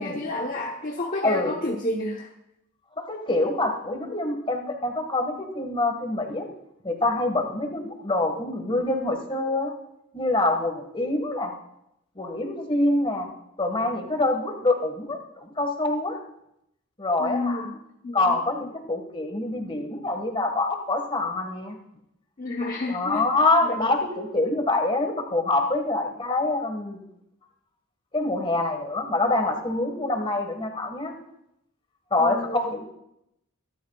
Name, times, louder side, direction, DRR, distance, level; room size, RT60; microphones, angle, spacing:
voice 1, 0.0-2.3 17.2-17.7 18.0-18.4 22.4-23.2 23.6-23.9 32.2-32.7, left 2 dB, 40° left, 0 dB, 1.0 m, -30 dB
voice 2, 1.2-1.5 3.0-6.5 6.8-9.7 10.1-11.5 12.1-13.3 13.6-16.2 17.0-17.7 18.1-21.8 22.9-27.0 28.1-31.1 32.1-32.8, left 2 dB, 25° left, 4 dB, 1.7 m, -25 dB
23.5 x 12.5 x 2.4 m, 0.81 s
head